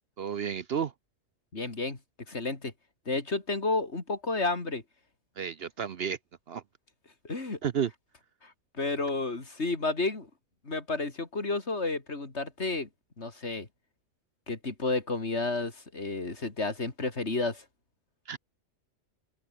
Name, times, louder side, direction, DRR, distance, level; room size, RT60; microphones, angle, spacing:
voice 1, 0.2-0.9 5.4-6.2 6.5-6.6 7.6-7.9 18.3-18.4, right 8 dB, 55° right, 0.9 m, -31 dB
voice 2, 1.5-2.0 2.3-2.7 3.1-4.8 7.2-7.6 8.4-8.5 8.8-10.3 10.6-12.9 13.2-13.7 14.5-17.6, left 3 dB, 55° left, 3.4 m, -31 dB
open air
omnidirectional pair, 1.3 m